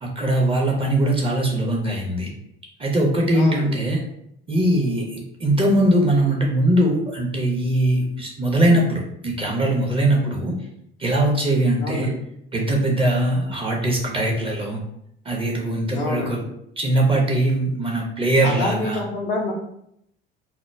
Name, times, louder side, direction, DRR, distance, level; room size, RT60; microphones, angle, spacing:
voice 1, 0.0-2.3 2.8-4.0 4.5-10.5 11.0-12.1 12.5-14.8 15.2-16.4 16.8-19.0, right 1 dB, 20° right, -1 dB, 0.6 m, -21 dB
voice 2, 3.3-3.8 11.8-12.2 15.9-16.5 18.4-19.5, left 3 dB, 80° left, -3 dB, 0.5 m, -27 dB
2.1 x 2.0 x 3.3 m, 0.75 s
figure-of-eight pair, 60°, 30 cm